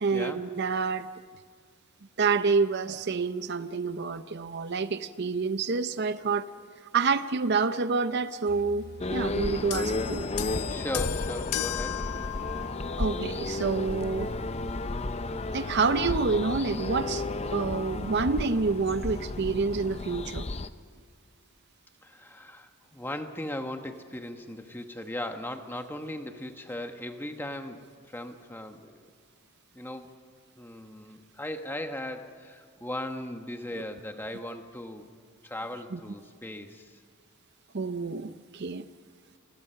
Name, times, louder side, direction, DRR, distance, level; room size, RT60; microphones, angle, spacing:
voice 1, 0.0-1.1 2.2-6.5 6.9-10.3 13.0-14.3 15.5-20.5 35.9-36.0 37.7-38.8, right 4 dB, 50° right, 0.6 m, -28 dB
sound 1, 8.5-19.8, left 1 dB, 45° left, 0.9 m, -47 dB
sound 2, 9.0-20.7, left 2 dB, 30° left, 0.6 m, -33 dB
sound 3, 9.7-13.3 14.2-14.4, left 10 dB, 85° left, 0.6 m, -35 dB
voice 2, 10.7-12.0 22.0-27.8 28.1-29.0 29.7-30.1 30.6-35.1 35.4-36.9, left 1 dB, 10° left, 1.2 m, -38 dB
28.5 x 20.5 x 5.7 m
head